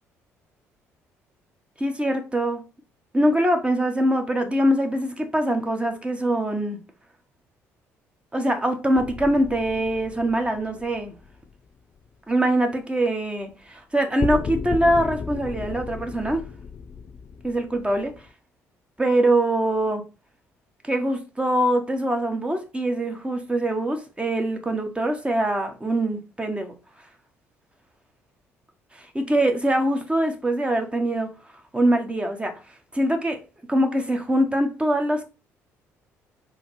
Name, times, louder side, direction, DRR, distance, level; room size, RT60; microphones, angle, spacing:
voice 1, 1.8-2.6 3.1-6.8 8.3-11.1 12.3-16.4 17.4-18.1 19.0-20.0 20.8-26.7 29.1-31.3 31.7-32.6 32.9-33.4 33.7-35.2, right 1 dB, 15° right, 1.7 m, -23 dB
sound 1, 9.0-11.7 14.2-18.3, left 5 dB, 35° left, 0.4 m, -34 dB
4.8 x 4.0 x 4.9 m
hypercardioid pair, 50°, 7 cm